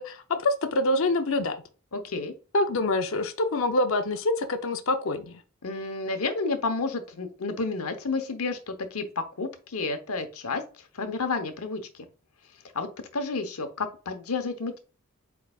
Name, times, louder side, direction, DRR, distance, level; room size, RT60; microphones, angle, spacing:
voice 1, 0.0-1.6 2.5-5.4, left 2 dB, 65° left, 0.6 m, -26 dB
voice 2, 1.9-2.3 5.6-10.6 10.9-12.1 12.7-14.8, left 3 dB, 90° left, 0.9 m, -31 dB
4.6 x 4.6 x 2.3 m
head